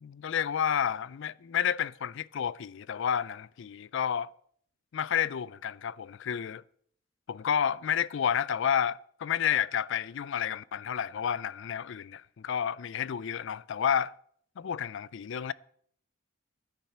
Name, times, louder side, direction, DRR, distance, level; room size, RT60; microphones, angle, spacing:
voice 1, 0.0-4.3 4.9-6.6 7.3-14.1 14.6-15.5, left 8 dB, 60° left, 0.4 m, -30 dB
14.5 x 10.5 x 4.3 m
head